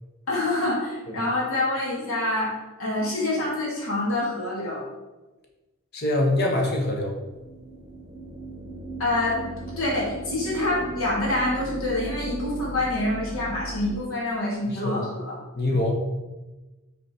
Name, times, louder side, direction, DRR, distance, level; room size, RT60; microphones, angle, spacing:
voice 1, 0.3-4.8 9.0-9.5 9.8-15.4, left 2 dB, 75° left, -5 dB, 2.3 m, -26 dB
voice 2, 5.9-7.2 14.7-15.0 15.5-15.9, left 1 dB, 50° left, 1 dB, 1.4 m, -24 dB
sound 1, 7.2-14.0, right 2 dB, 30° right, 1.1 m, -36 dB
8.9 x 4.2 x 4.4 m, 1.1 s
head